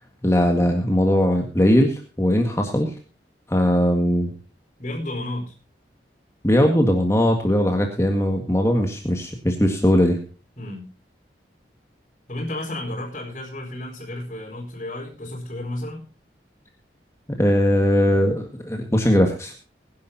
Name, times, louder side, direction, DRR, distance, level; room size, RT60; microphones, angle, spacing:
voice 1, 0.2-2.9 3.5-4.3 6.4-10.2 17.4-19.5, equal, 15° left, 3 dB, 1.8 m, -19 dB
voice 2, 4.8-5.5 10.6-10.9 12.3-16.1, left 1 dB, 40° left, -6 dB, 4.8 m, -32 dB
22.0 x 10.5 x 2.8 m, 0.35 s
head